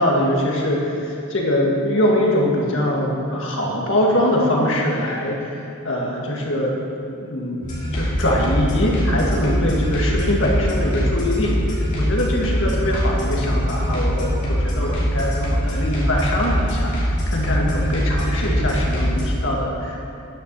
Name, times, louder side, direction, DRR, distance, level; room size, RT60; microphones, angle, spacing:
voice 1, 0.0-11.5 12.0-20.0, left 1 dB, 60° left, -2 dB, 1.9 m, -22 dB
sound 1, 7.6-19.3, equal, 35° left, 2.9 m, -22 dB
10.0 x 6.9 x 6.9 m, 2.5 s
head